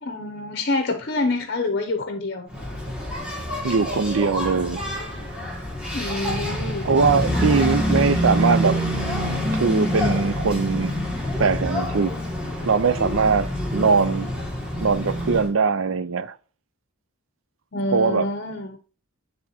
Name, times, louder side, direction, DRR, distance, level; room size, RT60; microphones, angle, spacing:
voice 1, 0.0-2.5 4.9-5.0 5.9-6.9 17.7-18.8, left 2 dB, 50° left, 0.7 m, -27 dB
Engine, 2.5-15.5, equal, 5° right, 1.4 m, -26 dB
voice 2, 3.6-4.8 6.8-8.9 9.5-11.0 11.4-12.2 12.6-14.3 14.8-16.3 17.9-18.3, right 5 dB, 65° right, 0.5 m, -21 dB
10.0 x 3.5 x 3.0 m
head